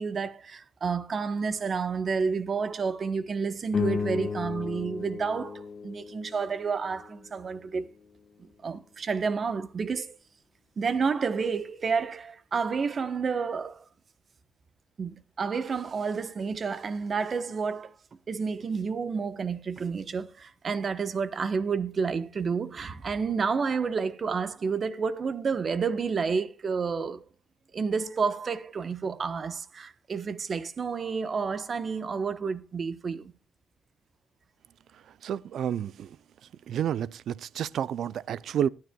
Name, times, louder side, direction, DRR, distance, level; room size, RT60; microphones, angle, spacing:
voice 1, 0.0-7.9 8.4-10.2 10.8-13.8 15.0-17.9 18.3-27.2 27.7-33.3, right 5 dB, 45° right, 1.0 m, -30 dB
sound 1, 3.7-8.2, left 5 dB, 40° left, 1.4 m, -34 dB
voice 2, 35.2-36.2 36.7-38.7, right 9 dB, 70° right, 0.5 m, -30 dB
19.5 x 9.7 x 2.3 m
cardioid pair, 90°, 0 cm